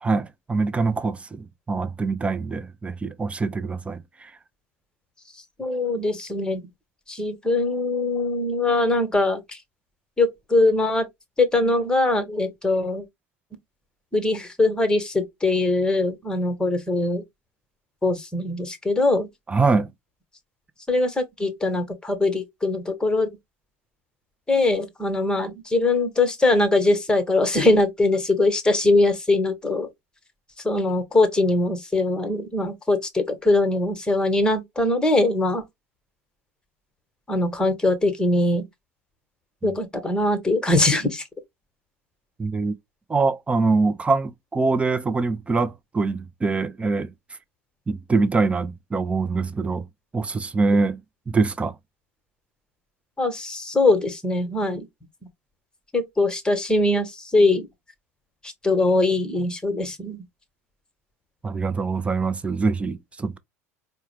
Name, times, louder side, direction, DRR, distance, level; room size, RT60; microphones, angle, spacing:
voice 1, 0.0-4.3 19.5-19.9 39.6-39.7 42.4-42.7 43.1-47.1 47.9-49.8 50.1-51.0 51.3-51.7 61.4-63.4, right 4 dB, 15° right, 0.5 m, -24 dB
voice 2, 5.6-6.6 7.1-9.6 10.2-11.1 11.4-13.0 14.1-17.2 18.0-19.3 20.9-23.3 24.5-29.9 30.6-35.6 37.3-38.7 39.6-41.2 53.2-54.9 55.9-57.7 58.4-60.2, left 2 dB, 10° left, 1.2 m, -22 dB
4.4 x 2.2 x 3.2 m
hypercardioid pair, 80°, 8 cm